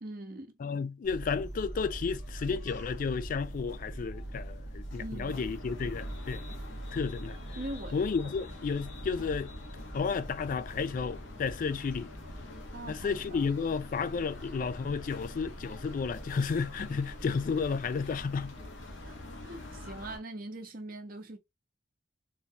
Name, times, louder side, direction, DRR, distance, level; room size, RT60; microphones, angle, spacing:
voice 1, 0.0-0.5 5.0-5.4 7.5-8.3 12.7-13.5 19.0-19.2 19.4-21.4, right 1 dB, 50° right, 0.9 m, -42 dB
voice 2, 0.6-6.4 6.9-7.4 7.9-9.5 9.9-12.1 12.9-18.5, left 5 dB, 45° left, 0.3 m, -32 dB
sound 1, 1.0-20.2, equal, 90° left, 1.1 m, -42 dB
3.9 x 2.3 x 2.8 m
head